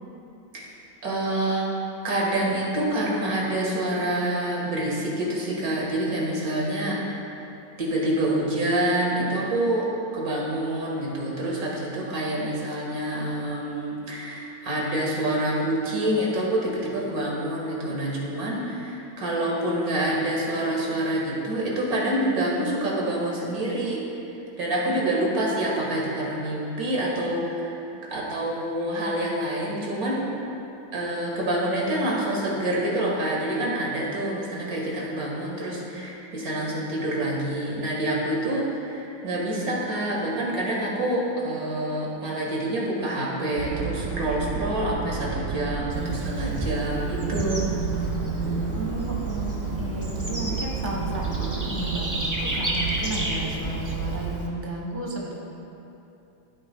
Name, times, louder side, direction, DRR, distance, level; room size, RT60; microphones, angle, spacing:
voice 1, 1.0-1.7 2.0-7.3 7.8-9.9 10.1-24.0 24.6-27.8 28.1-30.2 30.9-47.7, right 1 dB, 50° right, -4 dB, 2.1 m, -27 dB
sound 1, 43.6-54.3, right 5 dB, 90° right, 2.0 m, -31 dB
Bird / Insect, 45.9-54.5, right 1 dB, 15° right, 0.6 m, -33 dB
voice 2, 48.7-55.6, right 1 dB, 25° left, -2 dB, 0.4 m, -33 dB
14.0 x 8.6 x 2.3 m, 2.9 s
omnidirectional pair, 2.0 m